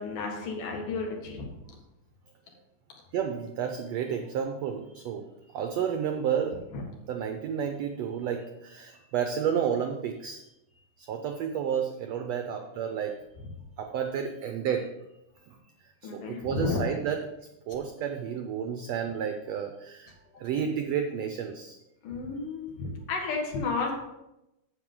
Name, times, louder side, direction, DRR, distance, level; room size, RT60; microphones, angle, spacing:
voice 1, 0.0-1.5 6.7-6.8 16.0-16.8 22.0-23.9, left 4 dB, 75° left, 1 dB, 3.3 m, -32 dB
voice 2, 3.1-6.6 7.1-10.4 10.7-13.1 13.8-14.9 15.5-15.6 16.0-17.2 17.7-21.8, right 8 dB, 85° right, 5 dB, 1.4 m, -31 dB
9.2 x 7.8 x 3.8 m, 0.90 s
omnidirectional pair, 3.8 m